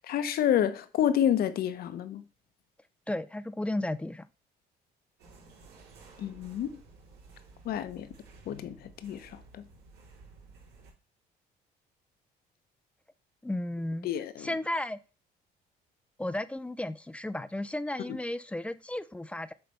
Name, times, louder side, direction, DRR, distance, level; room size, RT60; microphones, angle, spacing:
voice 1, 0.1-2.2 6.2-6.8 7.6-8.1 8.5-9.6 14.0-14.5, left 10 dB, 65° left, 0.9 m, -29 dB
voice 2, 3.1-4.3 13.4-14.1 14.4-15.0 16.2-19.5, left 1 dB, 5° left, 0.4 m, -34 dB
sound 1, 5.2-10.9, right 3 dB, 80° right, 3.3 m, -54 dB
7.8 x 3.3 x 5.4 m
cardioid pair, 110°, 17 cm